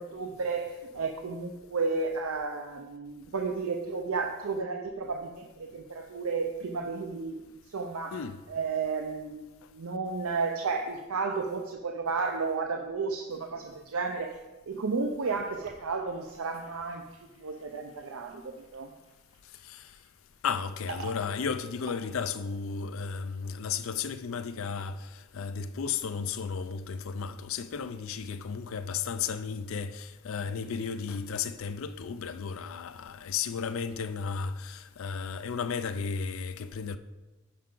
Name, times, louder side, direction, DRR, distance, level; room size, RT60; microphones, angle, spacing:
voice 1, 0.0-7.4 7.6-8.2 8.5-14.4 14.7-17.0 17.4-18.9, right 4 dB, 85° right, 0.6 m, -32 dB
sound 1, 15.2-22.9, right 3 dB, 70° right, 1.1 m, -50 dB
voice 2, 20.4-37.0, left 6 dB, 70° left, 0.4 m, -34 dB
10.0 x 5.6 x 3.8 m
head